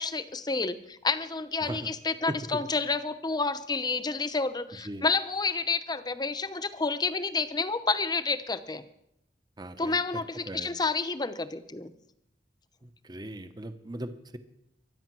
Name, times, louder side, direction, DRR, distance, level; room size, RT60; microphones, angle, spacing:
voice 1, 0.0-8.8 9.8-11.9, left 4 dB, 25° left, 12 dB, 0.8 m, -29 dB
voice 2, 9.6-10.0 10.5-10.7 12.8-14.4, right 1 dB, 25° right, 10 dB, 1.0 m, -38 dB
23.0 x 9.2 x 6.1 m, 0.81 s
head